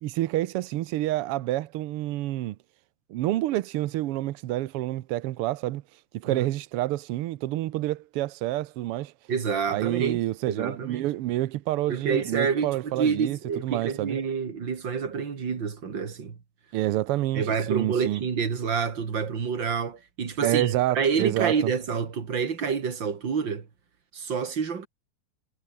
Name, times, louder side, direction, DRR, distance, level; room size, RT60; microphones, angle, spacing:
voice 1, 0.0-2.6 3.1-5.8 6.1-9.1 9.7-13.4 13.6-14.2 16.7-18.2 20.4-21.7, right 15 dB, 85° right, 1.2 m, -28 dB
voice 2, 9.3-10.2 10.5-11.1 11.9-16.4 17.3-23.7 24.1-24.9, right 6 dB, 40° right, 2.9 m, -28 dB
omnidirectional pair, 3.5 m